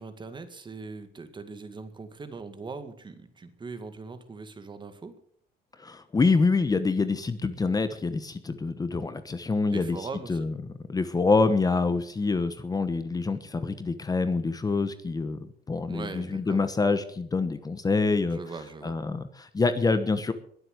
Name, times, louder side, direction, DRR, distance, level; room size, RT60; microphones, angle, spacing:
voice 1, 0.0-5.2 9.7-10.5 15.9-16.6 18.3-19.0, right 4 dB, 30° right, 9 dB, 2.0 m, -40 dB
voice 2, 5.8-10.0 10.3-10.5 10.9-15.4 15.7-18.4 18.8-20.3, left 3 dB, 20° left, 10 dB, 1.2 m, -26 dB
21.5 x 7.9 x 6.6 m, 0.62 s
cardioid pair, 110°, 17 cm